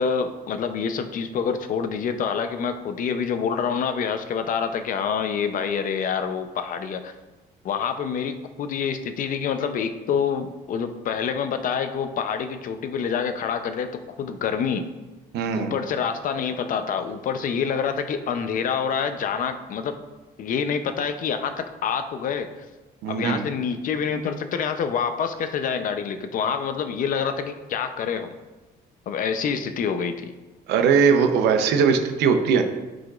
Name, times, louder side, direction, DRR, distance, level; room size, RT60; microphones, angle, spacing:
voice 1, 0.0-7.1 7.6-13.9 14.2-14.8 15.5-19.9 20.4-22.5 23.1-28.3 29.1-30.3, left 6 dB, 55° left, 8 dB, 0.6 m, -27 dB
voice 2, 15.3-15.7 23.0-23.4 30.7-32.6, right 6 dB, 85° right, 7 dB, 0.7 m, -20 dB
10.0 x 5.0 x 2.4 m, 1.2 s
cardioid pair, 110°, 17 cm